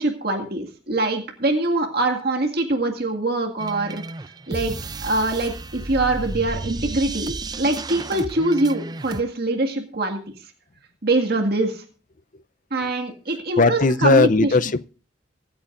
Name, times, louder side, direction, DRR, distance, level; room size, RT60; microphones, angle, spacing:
voice 1, 0.0-4.0 4.5-4.7 5.0-10.2 11.0-11.8 12.7-14.5, right 2 dB, 60° right, 2.0 m, -23 dB
sound 1, 3.6-9.2, right 2 dB, 20° right, 0.5 m, -33 dB
voice 2, 13.6-14.9, left 3 dB, 45° left, 0.6 m, -17 dB
25.0 x 8.6 x 2.5 m
head